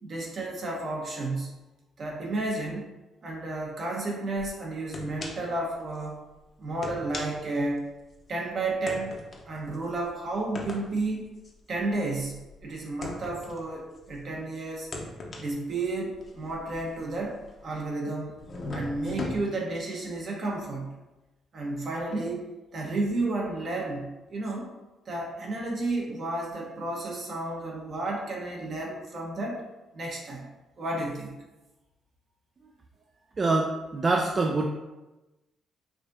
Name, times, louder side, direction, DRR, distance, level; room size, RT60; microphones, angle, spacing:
voice 1, 0.0-1.6 2.0-2.9 3.2-6.2 6.6-7.8 8.3-9.1 9.5-11.3 11.7-14.9 15.4-17.4 17.6-18.4 18.7-20.9 21.5-24.7 25.1-29.6 29.9-30.5 30.8-31.4, right 2 dB, 50° right, -1 dB, 1.0 m, -32 dB
sound 1, 4.4-4.5 4.9-5.6 5.9-6.1 6.7-8.2 8.9-14.3 14.8-17.9 18.4-19.4, left 2 dB, 45° left, 0.7 m, -39 dB
voice 2, 33.4-34.7, right 3 dB, 35° right, 1 dB, 0.4 m, -25 dB
4.8 x 2.6 x 2.6 m, 1.1 s
cardioid pair, 90°, 0 cm